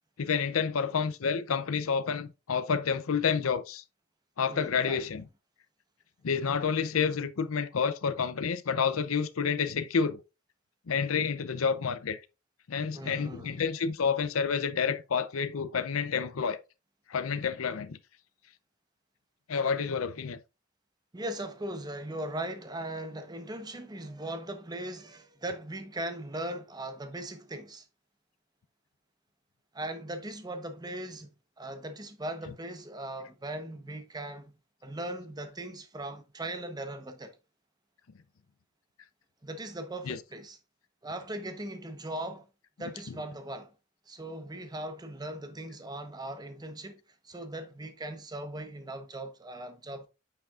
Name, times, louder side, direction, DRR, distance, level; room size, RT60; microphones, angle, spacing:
voice 1, 0.2-3.8 4.4-5.2 6.2-10.2 10.9-12.2 12.7-16.6 17.1-18.0 19.5-20.4 40.1-40.2, left 6 dB, 85° left, 0.6 m, -29 dB
voice 2, 4.5-5.0 12.9-13.6 21.1-27.9 29.7-31.3 31.6-34.5 34.8-37.4 39.4-40.6 41.0-42.5 42.8-43.7 44.1-50.1, right 1 dB, 20° right, 0.9 m, -39 dB
9.1 x 5.7 x 2.4 m
head